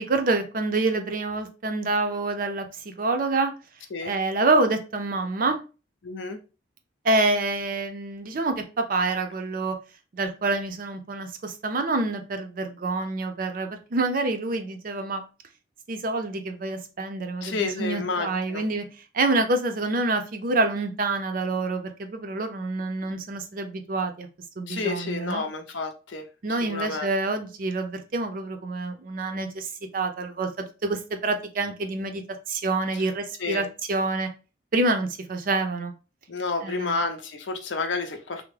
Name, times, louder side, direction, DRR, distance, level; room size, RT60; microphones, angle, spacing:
voice 1, 0.0-3.5 4.0-5.6 7.0-9.8 10.1-15.2 15.9-18.9 19.1-24.3 24.6-25.4 26.4-34.3 34.7-35.9 36.6-37.0, right 2 dB, 50° right, 0.5 m, -27 dB
voice 2, 6.0-6.4 17.4-18.6 24.7-27.1 33.4-33.6 36.3-38.5, left 4 dB, 90° left, 0.6 m, -30 dB
3.4 x 2.1 x 3.1 m
head